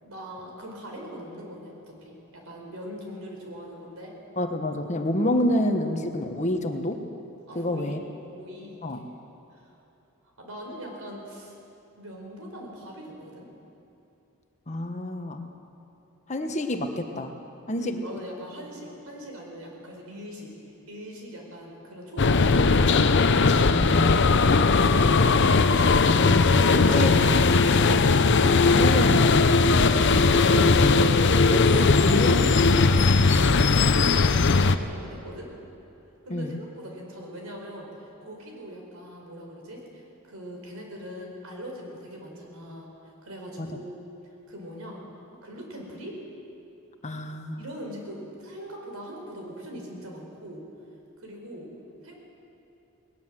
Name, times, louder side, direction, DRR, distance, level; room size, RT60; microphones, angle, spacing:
voice 1, 0.0-4.2 7.5-8.8 9.5-9.7 10.4-11.5 12.0-13.5 17.8-20.5 20.9-23.1 26.2-27.4 33.3-35.5 36.2-42.9 43.2-44.0 44.5-45.0 45.4-46.2 47.6-50.6 51.2-51.7 52.0-52.1, equal, 75° right, 0 dB, 4.7 m, -40 dB
voice 2, 4.4-7.0 7.5-8.0 8.8-9.1 14.7-15.4 16.3-17.3 17.7-18.0 23.7-24.4 26.0-26.6 26.9-27.1 28.7-32.8 36.3-36.6 43.6-43.8 47.0-47.6, left 1 dB, 35° left, 5 dB, 1.2 m, -29 dB
sound 1, 22.2-34.8, left 4 dB, 55° left, 0.7 m, -19 dB
19.5 x 19.0 x 7.6 m, 2.8 s
head